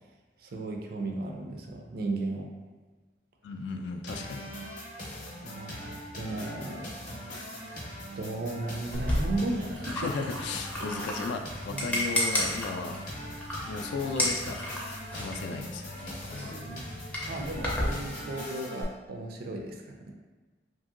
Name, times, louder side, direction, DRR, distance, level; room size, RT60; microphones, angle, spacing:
voice 1, 0.4-2.5 5.4-6.9 7.6-7.9 8.2-10.1 11.7-11.9 16.6-16.9 17.3-20.1, right 2 dB, 55° right, 2 dB, 0.4 m, -35 dB
voice 2, 3.4-4.5 10.0-13.0 13.7-14.6 15.1-16.6, left 4 dB, 70° left, 5 dB, 0.3 m, -35 dB
sound 1, 4.1-18.8, equal, 45° left, 0.7 m, -41 dB
sound 2, 8.9-17.9, left 1 dB, 10° left, 0.4 m, -33 dB
2.9 x 2.6 x 2.5 m, 1.3 s
head